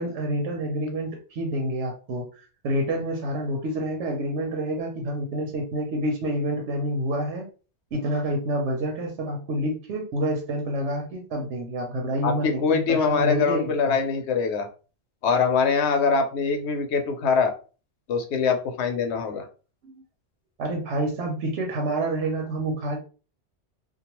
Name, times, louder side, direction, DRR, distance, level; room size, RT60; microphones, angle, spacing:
voice 1, 0.0-7.5 7.9-14.0 19.8-19.9 20.6-23.0, right 1 dB, 85° right, 2 dB, 0.9 m, -28 dB
voice 2, 12.2-14.7 15.2-17.5 18.1-19.4, left 5 dB, 70° left, 5 dB, 0.9 m, -23 dB
2.3 x 2.2 x 2.9 m, 0.35 s
omnidirectional pair, 1.2 m